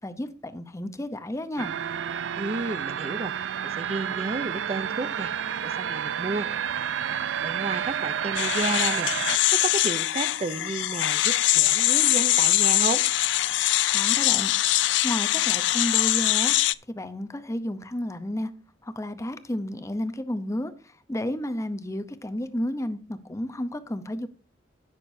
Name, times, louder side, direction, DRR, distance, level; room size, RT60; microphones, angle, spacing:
voice 1, 0.0-1.7 13.9-16.5 16.9-18.5 18.8-24.3, left 1 dB, 15° left, 0.7 m, -32 dB
sound 1, 1.6-9.4, right 8 dB, 85° right, 0.4 m, -30 dB
voice 2, 2.4-3.3 3.6-5.3 5.6-6.5 7.4-13.0, right 3 dB, 35° right, 0.5 m, -32 dB
sound 2, 8.4-16.7, left 15 dB, 75° left, 0.4 m, -23 dB
17.0 x 6.6 x 2.7 m
head